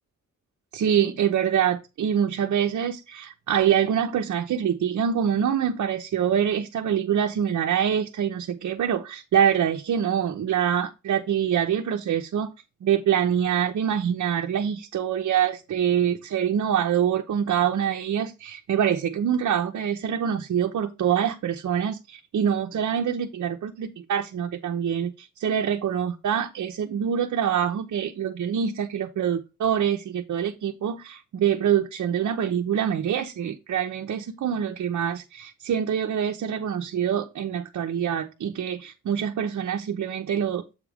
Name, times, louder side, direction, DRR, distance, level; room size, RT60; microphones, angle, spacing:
voice 1, 0.7-12.5 12.8-40.7, right 9 dB, 70° right, 0.9 m, -25 dB
8.0 x 3.4 x 4.9 m
cardioid pair, 95°, 30 cm